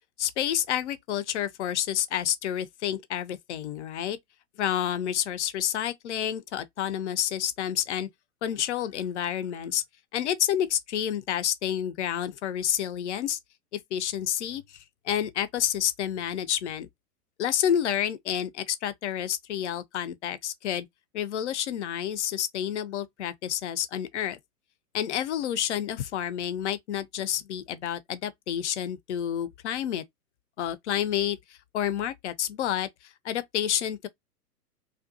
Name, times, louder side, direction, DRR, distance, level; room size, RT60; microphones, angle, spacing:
voice 1, 0.2-4.2 4.6-8.1 8.4-9.8 10.1-13.4 13.9-16.9 17.4-20.9 21.1-24.4 24.9-30.0 30.6-32.9 33.2-34.1, left 10 dB, 50° left, 0.5 m, -29 dB
2.5 x 2.2 x 2.6 m
figure-of-eight pair, 105°, 47 cm